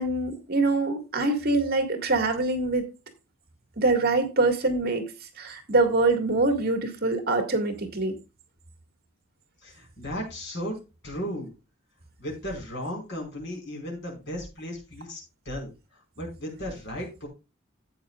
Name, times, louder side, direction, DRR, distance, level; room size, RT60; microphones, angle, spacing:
voice 1, 0.0-2.9 3.8-5.1 5.4-8.2, right 2 dB, 50° right, 1.9 m, -24 dB
voice 2, 9.6-10.8 11.0-11.5 12.2-17.3, equal, 60° left, 4.8 m, -35 dB
13.0 x 8.6 x 2.4 m
head